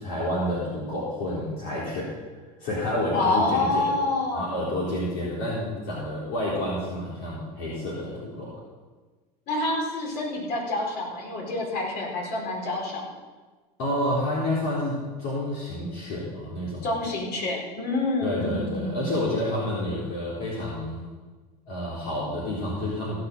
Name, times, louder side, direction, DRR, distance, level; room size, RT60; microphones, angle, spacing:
voice 1, 0.0-2.1 2.6-4.1 4.3-8.5 13.8-16.8 18.2-21.0 21.7-23.2, left 1 dB, 75° left, -6 dB, 4.0 m, -29 dB
voice 2, 3.1-4.7 9.5-13.1 16.8-19.1, left 2 dB, 55° left, -2 dB, 5.1 m, -27 dB
16.5 x 6.9 x 6.7 m, 1.3 s
hypercardioid pair, 90°, 20 cm